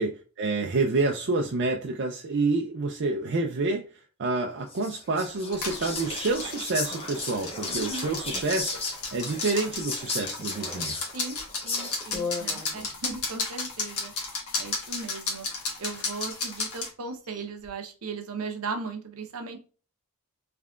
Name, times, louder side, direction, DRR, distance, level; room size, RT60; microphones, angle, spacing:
voice 1, 0.0-3.9 4.2-10.9, right 3 dB, 50° right, 2 dB, 0.5 m, -28 dB
Whispering, 4.7-12.2, left 3 dB, 25° left, 0.9 m, -36 dB
sound 1, 5.5-16.9, left 3 dB, 75° left, 1.3 m, -34 dB
voice 2, 7.7-8.1 11.1-14.1 14.5-15.5 15.8-19.6, right 4 dB, 70° right, 5 dB, 0.8 m, -37 dB
sound 2, 11.3-11.5 12.1-13.3 14.2-14.7 15.2-15.3 15.6-16.1 16.4-16.5 17.0-17.7, left 5 dB, 10° left, 1.2 m, -38 dB
3.6 x 3.3 x 2.3 m, 0.36 s
head